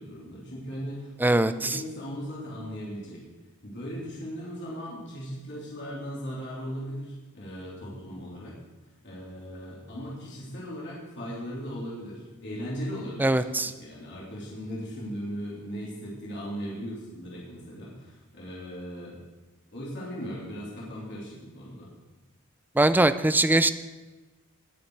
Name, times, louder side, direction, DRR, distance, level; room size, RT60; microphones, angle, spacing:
voice 1, 0.0-1.1 1.6-3.2 3.6-8.6 9.0-19.2 19.7-21.9, equal, 55° left, -5 dB, 3.1 m, -38 dB
voice 2, 1.2-1.8 13.2-13.7 22.8-23.7, right 2 dB, 10° right, 13 dB, 0.4 m, -22 dB
19.0 x 7.1 x 4.7 m, 1.2 s
head